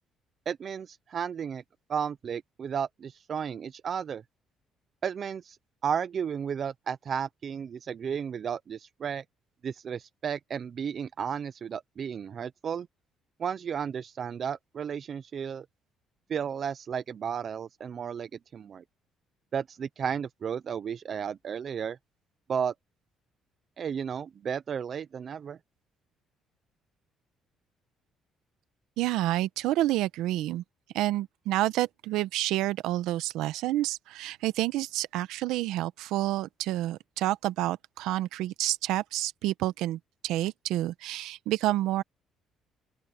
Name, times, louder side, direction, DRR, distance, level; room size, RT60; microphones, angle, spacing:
voice 1, 0.5-1.6 1.9-4.2 5.0-5.6 5.8-9.2 9.6-12.9 13.4-15.7 16.3-18.8 19.5-22.0 22.5-22.7 23.8-25.6, right 7 dB, 50° right, 0.6 m, -33 dB
voice 2, 29.0-30.6 30.9-42.0, right 15 dB, 85° right, 1.0 m, -29 dB
open air
cardioid pair, 95°, 0 cm